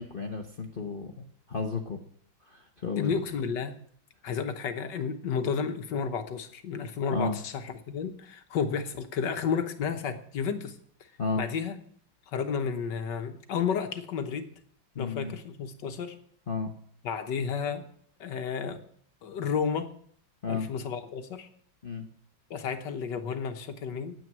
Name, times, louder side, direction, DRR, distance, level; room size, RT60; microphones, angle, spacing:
voice 1, 0.0-2.0 2.4-3.1 7.1-7.4 11.2-11.4 14.9-15.4 16.5-16.7 20.4-20.7 21.8-22.1, left 4 dB, 35° left, 3 dB, 0.9 m, -33 dB
voice 2, 3.0-3.8 4.2-10.8 11.4-11.8 12.3-14.5 15.0-16.2 17.0-17.9 18.2-18.8 19.2-19.9 20.5-21.5 22.5-24.1, left 6 dB, 70° left, 8 dB, 1.7 m, -32 dB
9.2 x 8.8 x 9.2 m, 0.62 s
omnidirectional pair, 2.0 m